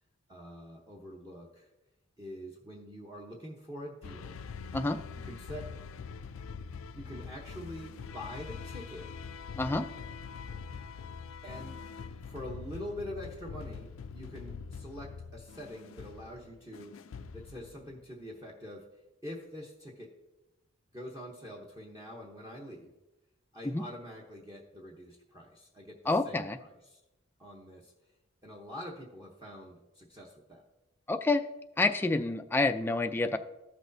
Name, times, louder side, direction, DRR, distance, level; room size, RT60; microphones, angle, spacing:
voice 1, 0.3-1.7 2.2-4.4 5.1-5.7 6.9-9.1 11.4-11.8 12.2-17.0 17.3-18.9 19.2-20.1 20.9-22.9 23.5-27.0 27.4-27.9 28.4-30.6, equal, 20° right, -2 dB, 0.9 m, -45 dB
sound 1, 4.0-18.1, left 5 dB, 85° left, 0.4 m, -44 dB
voice 2, 9.6-9.9 23.7-23.8 26.1-26.6 31.1-31.4 31.8-33.4, left 2 dB, 10° left, 7 dB, 0.3 m, -28 dB
14.0 x 6.1 x 2.7 m, 0.97 s
head